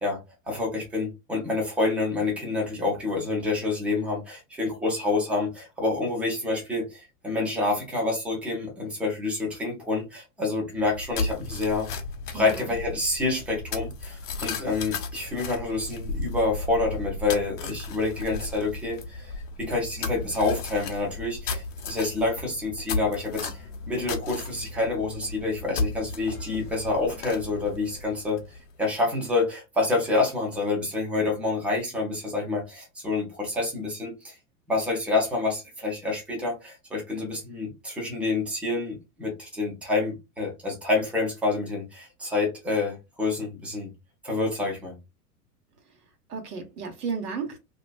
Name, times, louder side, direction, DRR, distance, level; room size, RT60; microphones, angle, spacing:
voice 1, 0.0-11.9 12.3-34.4 34.7-43.9 44.2-44.9, left 3 dB, 5° right, 0.3 m, -28 dB
sound 1, 10.8-28.7, left 3 dB, 70° left, 0.8 m, -35 dB
voice 2, 12.3-12.8 46.3-47.6, right 5 dB, 75° right, 1.1 m, -33 dB
2.4 x 2.3 x 2.3 m
hypercardioid pair, 100°, 47 cm